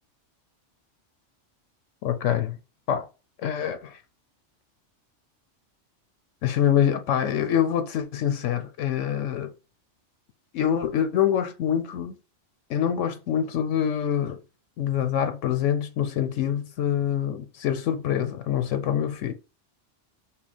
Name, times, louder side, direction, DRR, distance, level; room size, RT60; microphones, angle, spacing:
voice 1, 2.0-2.6 2.9-3.1 3.4-3.9 6.4-9.5 10.5-12.2 12.7-14.4 14.8-19.3, left 9 dB, 85° left, 1.0 m, -25 dB
5.7 x 2.2 x 4.1 m
omnidirectional pair, 1.2 m